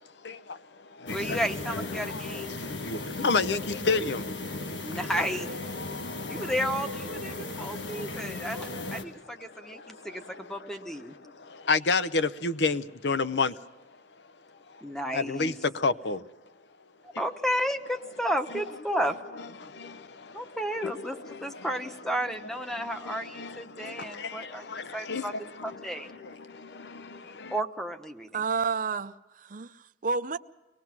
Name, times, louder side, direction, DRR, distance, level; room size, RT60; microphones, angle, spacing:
voice 1, 0.2-1.4 1.7-5.0 5.7-6.5 7.3-9.2 9.4-10.6 11.2-13.6 15.1-16.2 18.5-18.6 18.9-19.0 19.6-20.6 20.8-21.7 22.7-27.5, left 4 dB, 70° left, 0.7 m, -32 dB
sound 1, 1.1-9.0, left 2 dB, 85° left, 1.5 m, -36 dB
voice 2, 1.1-2.6 4.8-5.5 6.3-11.1 14.8-15.6 17.2-19.2 20.3-25.3 25.6-26.1 27.5-28.4, equal, 5° left, 1.1 m, -32 dB
voice 3, 28.3-30.4, right 5 dB, 50° right, 0.6 m, -30 dB
24.5 x 19.0 x 6.0 m
head